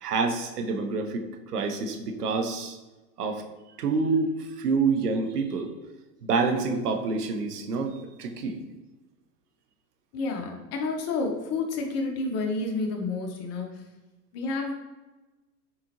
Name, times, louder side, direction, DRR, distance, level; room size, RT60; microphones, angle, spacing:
voice 1, 0.0-2.8 3.2-3.4 3.8-5.7 6.2-8.6, right 4 dB, 80° right, 5 dB, 0.9 m, -27 dB
voice 2, 10.1-13.7 14.3-14.7, left 3 dB, 35° left, 2 dB, 0.9 m, -30 dB
4.2 x 3.7 x 2.9 m, 1.1 s
hypercardioid pair, 110°, 46 cm